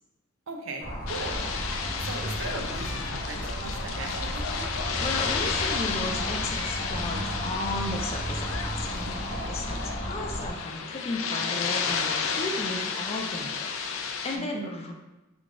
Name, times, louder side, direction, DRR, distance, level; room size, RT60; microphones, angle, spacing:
voice 1, 0.5-1.5 2.0-4.1 4.5-4.7 8.9-9.4 14.3-14.8, right 3 dB, 80° right, 3 dB, 0.6 m, -39 dB
sound 1, 0.8-10.5, equal, 55° left, 0.8 m, -34 dB
sound 2, 1.1-14.4, left 5 dB, 85° left, 0.4 m, -32 dB
voice 2, 5.0-8.9 9.5-14.9, left 2 dB, 30° left, 2 dB, 0.4 m, -35 dB
3.8 x 2.4 x 3.5 m, 1.0 s
head